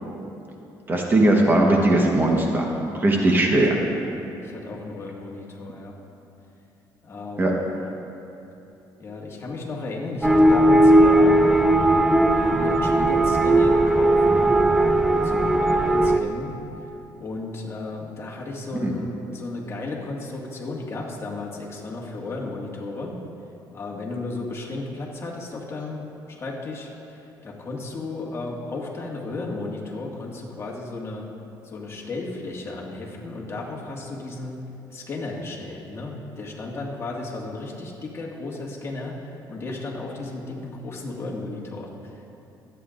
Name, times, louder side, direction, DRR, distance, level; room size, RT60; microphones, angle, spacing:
voice 1, 0.9-2.7 2.9-3.8 7.4-7.5 18.8-18.9, right 1 dB, 25° right, 0 dB, 1.2 m, -19 dB
voice 2, 3.2-3.6 4.4-6.0 7.0-7.6 9.0-11.4 12.4-23.2 23.7-26.0 26.3-31.3 31.6-34.6 34.9-42.3, left 2 dB, 35° left, -2 dB, 1.9 m, -34 dB
sound 1, 10.2-16.2, right 1 dB, 5° right, 0.5 m, -17 dB
24.5 x 9.3 x 2.6 m, 2.8 s
cardioid pair, 120°, 8 cm